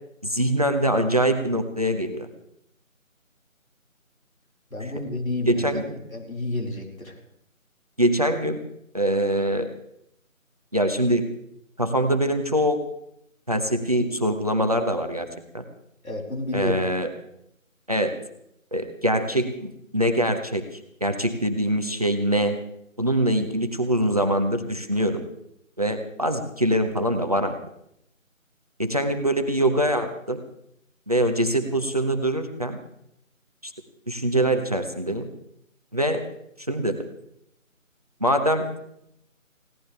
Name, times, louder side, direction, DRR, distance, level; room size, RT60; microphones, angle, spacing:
voice 1, 0.2-2.3 5.5-5.9 8.0-8.6 8.9-9.7 10.7-11.2 11.8-12.8 13.5-15.3 15.5-15.6 16.5-17.1 17.9-18.1 18.7-22.6 23.0-25.2 25.8-27.5 28.8-30.4 31.1-32.8 33.6-33.7 34.1-35.3 35.9-36.2 36.7-37.1 38.2-38.7, right 1 dB, 30° right, 7 dB, 0.9 m, -23 dB
voice 2, 4.7-5.8 6.1-7.2 16.0-16.8, left 2 dB, 75° left, 0 dB, 4.9 m, -30 dB
21.5 x 17.0 x 3.4 m, 0.76 s
figure-of-eight pair, 165°, 41 cm